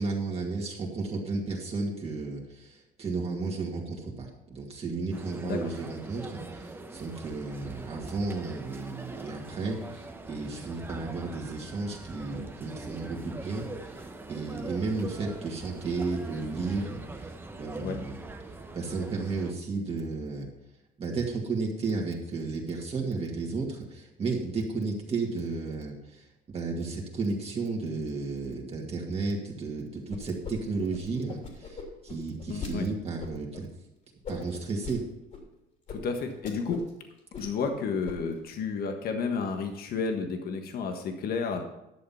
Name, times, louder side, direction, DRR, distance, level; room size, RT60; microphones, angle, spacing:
voice 1, 0.0-18.2 18.7-20.5 21.0-26.3 26.5-33.7 34.3-35.0, right 3 dB, 35° right, -1 dB, 2.3 m, -33 dB
sound 1, 5.1-19.5, right 2 dB, 15° right, 1.0 m, -42 dB
sound 2, 30.1-30.5 30.8-32.7 33.2-33.6 34.2-35.0 35.3-35.4 35.9-36.0 36.3-36.9 37.2-37.7 38.0-38.4, left 5 dB, 45° left, 3.1 m, -40 dB
voice 2, 32.5-32.9 35.9-36.8 37.4-41.6, left 5 dB, 65° left, 5 dB, 1.4 m, -31 dB
11.5 x 6.8 x 5.7 m, 0.90 s
cardioid pair, 110°, 17 cm